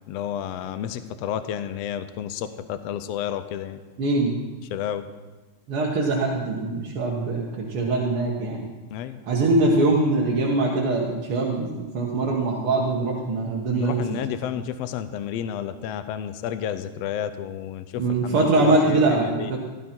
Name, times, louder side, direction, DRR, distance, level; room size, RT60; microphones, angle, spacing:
voice 1, 0.1-3.8 4.7-5.0 8.9-9.2 13.8-19.5, left 9 dB, 85° left, 11 dB, 1.4 m, -31 dB
voice 2, 4.0-4.3 5.7-8.7 9.3-14.2 18.0-19.6, right 2 dB, 55° right, -3 dB, 1.9 m, -23 dB
15.5 x 13.0 x 4.4 m, 1.3 s
omnidirectional pair, 3.6 m